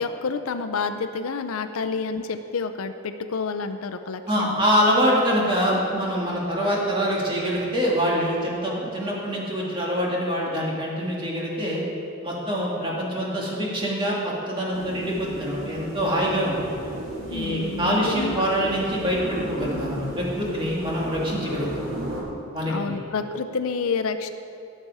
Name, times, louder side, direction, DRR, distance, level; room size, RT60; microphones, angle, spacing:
voice 1, 0.0-4.7 17.3-18.5 22.6-24.3, left 4 dB, 85° left, 8 dB, 0.5 m, -29 dB
voice 2, 4.3-11.8 12.2-16.8 17.3-21.7 22.5-22.9, equal, 25° right, -4 dB, 2.1 m, -25 dB
sound 1, 14.7-22.2, right 1 dB, 75° right, 2.5 m, -35 dB
16.5 x 6.7 x 4.8 m, 2.7 s
head